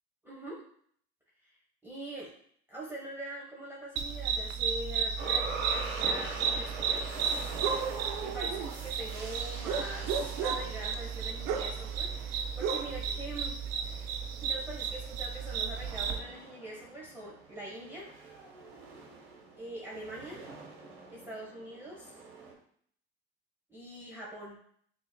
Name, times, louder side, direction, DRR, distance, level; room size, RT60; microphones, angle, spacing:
voice 1, 0.2-0.6 1.4-1.6 1.8-2.3 2.7-7.1 8.2-13.6 14.4-18.1 19.6-20.5 21.1-22.2 23.7-24.6, right 1 dB, 5° right, -5 dB, 1.1 m, -43 dB
sound 1, 4.0-16.2, right 6 dB, 60° right, 0.6 m, -33 dB
sound 2, 5.2-22.5, right 3 dB, 75° right, 1.3 m, -44 dB
6.1 x 3.0 x 2.2 m, 0.63 s
hypercardioid pair, 80°, 31 cm